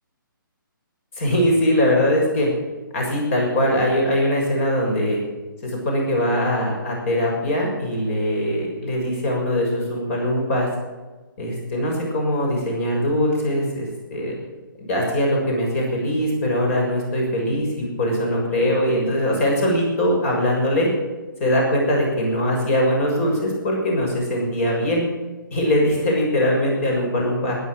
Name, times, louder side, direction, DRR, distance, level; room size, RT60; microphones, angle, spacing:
voice 1, 1.2-2.5 2.9-5.2 5.6-10.7 11.4-14.3 14.8-20.9 21.4-25.0 25.5-27.6, equal, 40° left, 0 dB, 6.7 m, -21 dB
13.5 x 10.5 x 8.0 m, 1.2 s
figure-of-eight pair, 145°, 11 cm